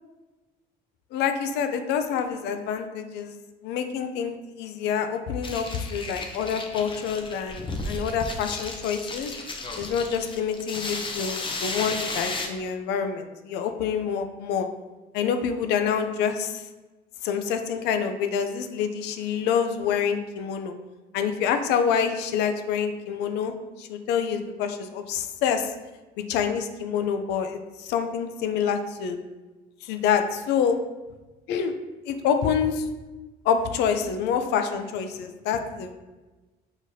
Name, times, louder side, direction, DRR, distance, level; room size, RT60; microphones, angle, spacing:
voice 1, 1.1-3.4 3.6-9.3 9.8-14.7 15.1-16.6 17.2-20.7 21.1-25.7 26.3-29.2 29.8-30.8 31.5-31.7 32.0-32.9 33.4-35.9, left 7 dB, 85° left, 7 dB, 0.5 m, -27 dB
sound 1, 5.4-12.5, left 3 dB, 30° left, 0.6 m, -34 dB
5.0 x 3.9 x 2.7 m, 1.2 s
cardioid pair, 110°, 17 cm